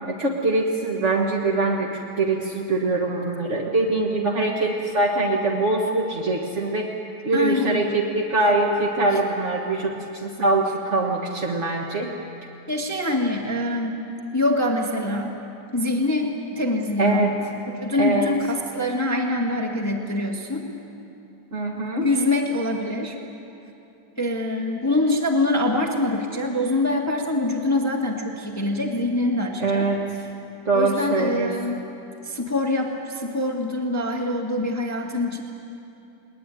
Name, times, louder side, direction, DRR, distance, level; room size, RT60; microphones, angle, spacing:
voice 1, 0.0-6.9 7.2-12.1 17.0-17.3 17.9-18.3 21.5-22.1 29.6-30.0 30.6-31.5, right 2 dB, 45° right, -1 dB, 0.9 m, -23 dB
voice 2, 7.3-7.8 9.1-9.2 12.7-14.0 14.3-15.4 15.7-17.3 17.7-20.6 22.0-23.2 24.2-29.9 30.7-31.8 32.2-35.4, left 1 dB, 15° left, 1 dB, 0.5 m, -24 dB
21.5 x 20.5 x 9.3 m, 2.9 s
omnidirectional pair, 3.8 m